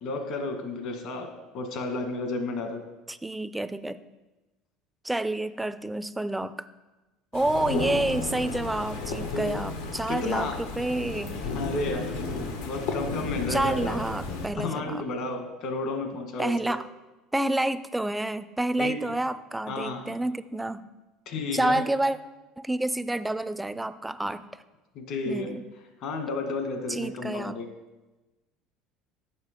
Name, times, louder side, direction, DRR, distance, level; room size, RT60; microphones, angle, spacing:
voice 1, 0.0-1.3 1.5-2.8 9.3-9.5 10.1-10.5 11.5-12.0 12.6-14.1 14.6-16.5 18.8-18.9 19.7-20.2 21.2-21.8 24.9-25.5 26.0-27.6, left 3 dB, 65° left, 5 dB, 1.5 m, -32 dB
voice 2, 3.1-4.0 5.0-6.6 7.3-11.5 13.5-15.0 16.4-16.9 17.3-20.9 21.5-22.2 22.6-24.4 25.3-25.6 26.9-27.6, right 1 dB, 10° right, 13 dB, 0.4 m, -29 dB
sound 1, 7.3-14.5, left 3 dB, 90° left, 1.2 m, -33 dB
7.4 x 5.4 x 5.1 m, 1.1 s
supercardioid pair, 100°, 0 cm